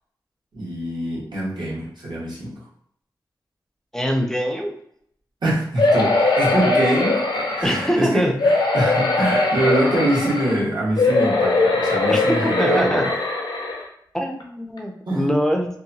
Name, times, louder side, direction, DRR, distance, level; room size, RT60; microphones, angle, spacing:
voice 1, 0.5-2.5 5.4-13.1 15.1-15.3, right 1 dB, 70° right, -6 dB, 1.2 m, -24 dB
voice 2, 3.9-4.7 7.6-8.3 12.1-13.0 14.1-15.7, equal, 5° left, 2 dB, 0.4 m, -23 dB
sound 1, 5.8-7.9 8.4-10.6 11.0-13.8 14.4-14.5 14.8-14.9, left 2 dB, 75° left, 0.5 m, -20 dB
2.8 x 2.2 x 2.6 m, 0.69 s
wide cardioid pair, 110°, 8 cm